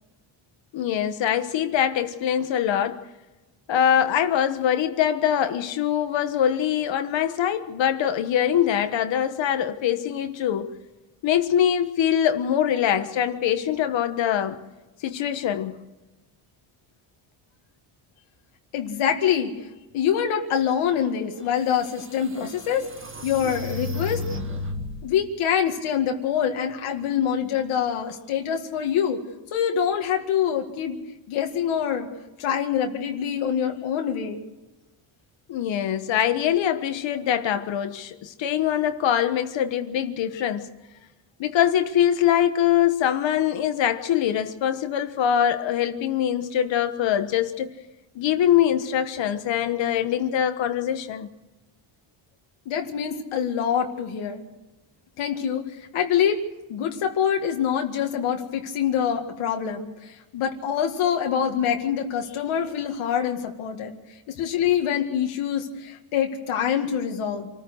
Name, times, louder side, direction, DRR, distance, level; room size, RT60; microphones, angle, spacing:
voice 1, 0.7-3.0 3.7-10.7 11.2-14.6 15.0-15.8 35.5-40.7 41.4-47.7 48.1-51.3, left 10 dB, 60° left, 1.4 m, -23 dB
voice 2, 18.7-19.7 19.9-22.9 23.2-24.2 25.0-29.2 29.5-31.0 31.3-32.1 32.4-34.4 52.7-54.4 55.2-56.4 56.7-64.0 64.3-67.5, left 8 dB, 80° left, 2.0 m, -25 dB
sound 1, 21.3-21.4 22.0-25.1, left 2 dB, 25° right, 1.7 m, -33 dB
27.0 x 14.5 x 6.5 m
cardioid pair, 155°, 49 cm